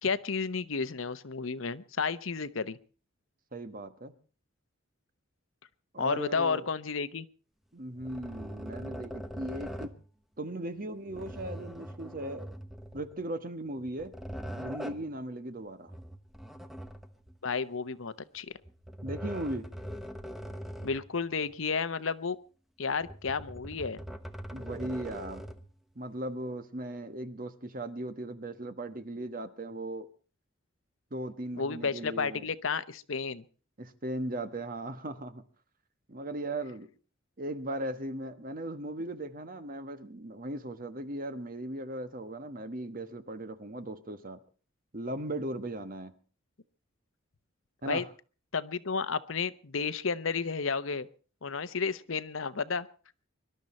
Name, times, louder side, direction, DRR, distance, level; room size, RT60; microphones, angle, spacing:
voice 1, 0.0-2.8 6.0-7.3 17.4-18.5 20.8-22.4 22.8-24.0 31.5-33.4 47.9-48.0 48.5-51.1 51.4-52.9, left 5 dB, 75° left, 0.9 m, -32 dB
voice 2, 3.5-4.1 5.9-6.7 7.7-9.9 10.4-12.6 12.9-14.2 14.6-15.9 19.0-19.7 24.5-25.5 26.0-30.1 31.1-32.5 33.8-35.4 36.1-36.9 37.4-44.4 44.9-46.1 47.8-48.1, right 1 dB, 45° right, 1.3 m, -38 dB
sound 1, 8.0-10.0 11.1-13.2 13.8-15.1 15.9-17.4 18.6-21.1 21.5-21.6 22.9-25.7, equal, ahead, 1.0 m, -42 dB
24.5 x 12.0 x 4.3 m
head